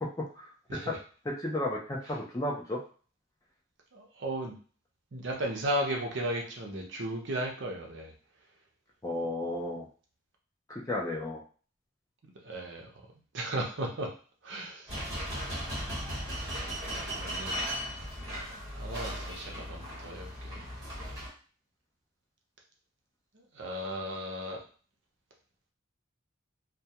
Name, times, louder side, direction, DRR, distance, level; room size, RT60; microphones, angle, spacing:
voice 1, 1.2-2.8 9.0-9.9 10.7-11.4, left 1 dB, 15° left, -2 dB, 0.4 m, -33 dB
voice 2, 3.9-4.6 5.1-8.1 12.4-12.9 13.3-14.1 14.4-15.0 17.1-17.6 18.7-20.6 23.5-24.6, right 1 dB, 55° right, 0 dB, 0.6 m, -35 dB
sound 1, 14.9-21.3, equal, 20° right, 1.0 m, -37 dB
2.2 x 2.2 x 2.8 m, 0.39 s
head